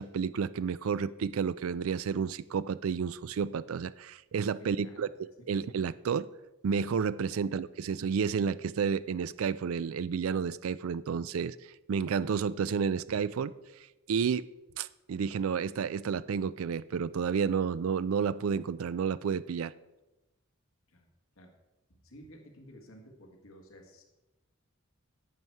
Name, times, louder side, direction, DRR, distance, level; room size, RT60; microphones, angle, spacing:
voice 1, 0.0-5.1 5.5-6.3 6.6-11.6 11.9-13.5 14.1-14.4 14.8-19.7, right 6 dB, 80° right, 17 dB, 0.4 m, -31 dB
voice 2, 4.6-5.0 5.4-5.5 7.3-7.4 20.9-21.1 21.3-21.5 22.0-24.0, equal, 80° left, 2 dB, 1.7 m, -53 dB
11.0 x 7.7 x 4.6 m, 1.0 s
head